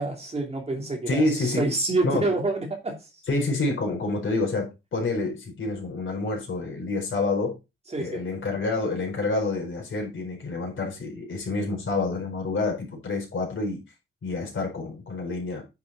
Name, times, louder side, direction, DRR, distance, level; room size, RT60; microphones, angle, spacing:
voice 1, 0.0-3.0 7.9-8.2, right 2 dB, 30° right, 2.8 m, -27 dB
voice 2, 1.1-1.7 2.0-2.3 3.3-7.6 8.0-13.8 14.2-15.6, left 3 dB, 70° left, 4.5 m, -28 dB
9.8 x 6.1 x 4.1 m
wide cardioid pair, 180°, 21 cm